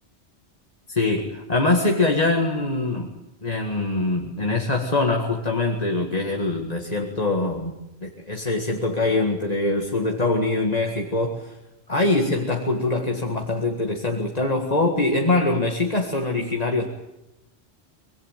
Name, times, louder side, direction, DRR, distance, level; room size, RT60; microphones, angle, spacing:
voice 1, 0.9-3.1 3.4-7.7 8.0-11.5 11.9-16.9, left 2 dB, 35° left, 2 dB, 2.1 m, -23 dB
25.0 x 22.5 x 9.2 m, 0.92 s
omnidirectional pair, 1.2 m